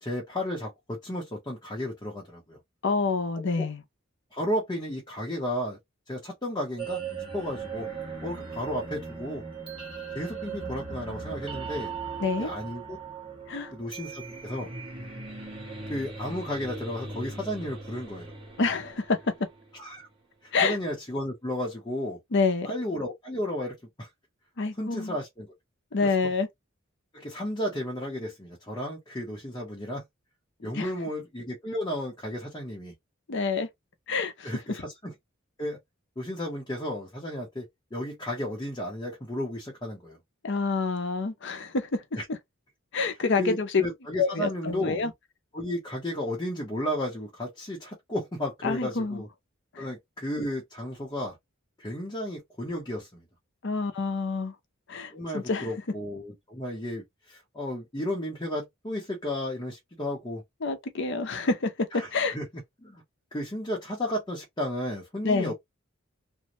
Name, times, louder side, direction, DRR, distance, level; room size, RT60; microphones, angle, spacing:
voice 1, 0.0-2.6 3.6-3.7 4.3-5.8 6.1-7.0 7.3-7.9 8.2-9.4 10.1-11.9 12.4-13.0 13.7-14.7 15.9-18.3 19.7-20.1 20.4-22.2 22.6-24.1 24.8-25.5 26.0-26.1 27.1-30.0 30.6-32.9 34.4-35.1 35.6-35.8 36.2-40.2 42.2-42.3 43.4-45.0 45.5-49.3 49.8-51.4 51.8-53.2 55.1-60.4 61.9-62.5 62.8-63.0 63.3-65.5, left 1 dB, 20° left, 0.8 m, -33 dB
voice 2, 2.8-3.8 12.2-12.5 13.5-13.7 18.6-19.2 20.5-20.8 22.3-22.7 24.6-25.2 25.9-26.5 30.7-30.9 33.3-33.7 34.1-34.8 40.4-42.0 42.9-43.8 44.2-45.1 48.6-49.2 49.7-49.9 53.6-54.5 54.9-55.7 60.6-61.7 62.1-62.4 65.2-65.5, left 4 dB, 60° left, 0.7 m, -27 dB
sound 1, 6.8-19.8, right 5 dB, 25° right, 1.2 m, -39 dB
2.6 x 2.2 x 2.9 m
head